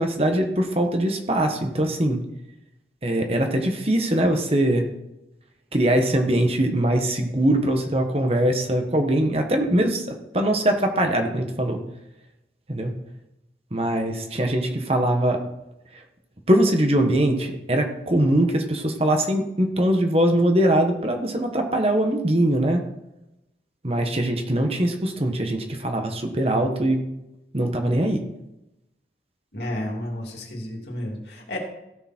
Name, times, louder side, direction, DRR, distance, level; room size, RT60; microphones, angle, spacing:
voice 1, 0.0-2.2 3.0-4.8 5.7-11.8 12.7-12.9 13.7-15.4 16.5-22.8 23.8-27.0 27.5-28.2, right 1 dB, 35° right, 4 dB, 1.4 m, -22 dB
voice 2, 29.5-31.6, left 1 dB, 70° left, 0 dB, 3.0 m, -31 dB
16.5 x 7.0 x 4.4 m, 0.90 s
head